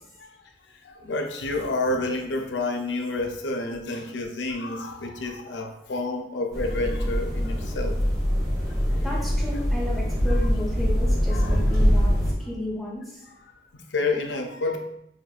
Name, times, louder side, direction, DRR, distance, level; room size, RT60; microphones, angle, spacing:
voice 1, 0.8-8.0 11.3-11.6 13.7-14.8, left 2 dB, 90° left, 4 dB, 0.5 m, -29 dB
sound 1, 6.5-12.3, equal, 20° right, 1.3 m, -23 dB
voice 2, 9.0-12.1 12.5-13.2, left 1 dB, ahead, -5 dB, 1.0 m, -33 dB
5.6 x 2.4 x 2.3 m, 0.80 s
head